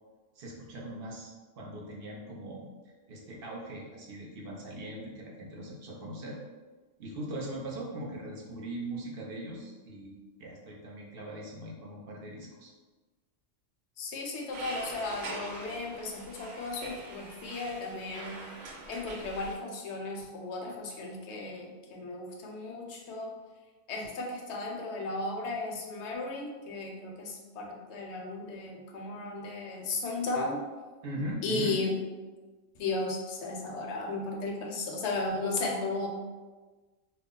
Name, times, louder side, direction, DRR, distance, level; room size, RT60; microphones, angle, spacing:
voice 1, 0.4-2.6 3.1-6.4 7.0-12.7 31.0-31.7, right 1 dB, 60° right, -2 dB, 0.7 m, -40 dB
voice 2, 14.0-18.4 18.9-23.3 23.9-30.6 31.4-32.0 32.8-36.1, left 3 dB, 70° left, 0 dB, 0.8 m, -35 dB
sound 1, 14.5-19.5, right 2 dB, 85° right, 0.9 m, -44 dB
2.3 x 2.0 x 3.7 m, 1.3 s
omnidirectional pair, 1.2 m